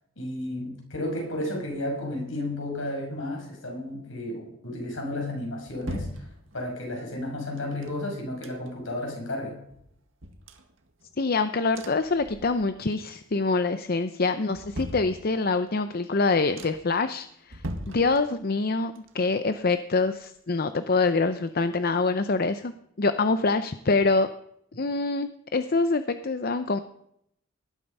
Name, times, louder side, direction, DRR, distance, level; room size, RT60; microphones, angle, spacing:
voice 1, 0.2-6.3 6.5-9.6, left 1 dB, 70° left, 1 dB, 6.0 m, -33 dB
sound 1, 5.1-6.9 7.6-9.0 9.3-9.4 9.7-11.3 11.7-12.9 13.2-13.7 14.2-15.7 16.1-16.2 16.5-17.0 17.4-18.7 18.9-20.8 21.1-21.2, equal, 70° right, 1.9 m, -41 dB
voice 2, 11.2-22.7 23.0-24.3 24.8-26.8, left 3 dB, 45° left, 11 dB, 0.7 m, -25 dB
19.0 x 12.0 x 5.5 m, 0.75 s
head